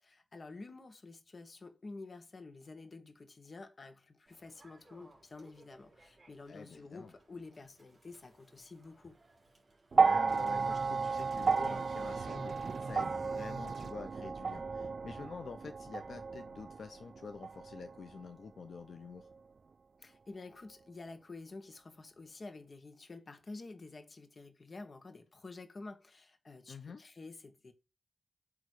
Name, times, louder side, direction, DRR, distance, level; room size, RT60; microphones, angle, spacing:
voice 1, 0.0-9.2 20.0-27.7, left 3 dB, 50° left, 1.4 m, -50 dB
Human voice / Subway metro underground, 4.3-13.7, right 2 dB, 40° right, 3.0 m, -59 dB
voice 2, 6.5-7.1 9.9-19.3 26.7-27.0, left 5 dB, 85° left, 0.7 m, -47 dB
sound 1, 9.9-18.3 19.3-19.4, right 5 dB, 60° right, 0.3 m, -33 dB
sound 2, 10.3-13.9, right 5 dB, 85° right, 0.8 m, -47 dB
8.5 x 3.2 x 6.5 m
wide cardioid pair, 110°, 0 cm